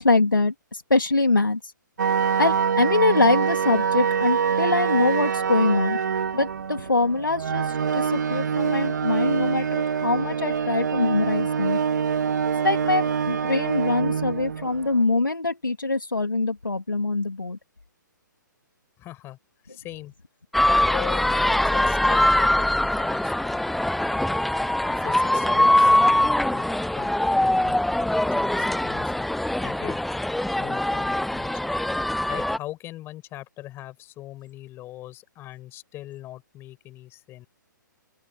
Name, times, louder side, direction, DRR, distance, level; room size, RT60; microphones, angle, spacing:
voice 1, 0.0-1.6 2.4-6.0 6.3-11.8 12.6-17.6, left 3 dB, 85° left, 3.1 m, -23 dB
sound 1, 2.0-15.0, right 7 dB, 65° right, 2.5 m, -25 dB
voice 2, 19.0-19.4 19.7-20.1 20.6-23.9 24.8-26.6 26.9-29.3 29.6-30.0 30.5-31.6 32.3-37.5, left 15 dB, 20° left, 7.5 m, -40 dB
sound 2, 20.5-32.6, left 1 dB, ahead, 0.3 m, -22 dB
open air
figure-of-eight pair, 130°, 11 cm